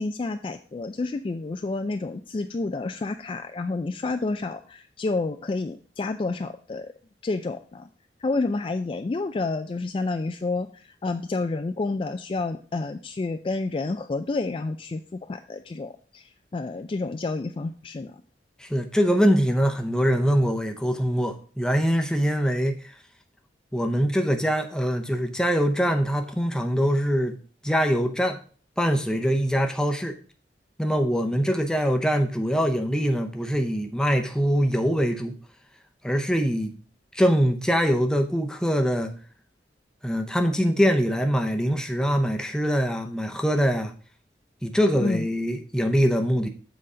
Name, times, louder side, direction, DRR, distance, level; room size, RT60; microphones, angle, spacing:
voice 1, 0.0-6.9 7.2-7.9 8.2-18.2 45.0-45.3, left 3 dB, 30° left, 0.3 m, -29 dB
voice 2, 18.6-22.9 23.7-27.4 27.6-28.4 28.8-30.1 30.8-35.3 36.0-36.8 37.1-39.1 40.0-43.9 44.6-46.5, equal, 5° left, 0.7 m, -23 dB
7.6 x 4.1 x 4.9 m
head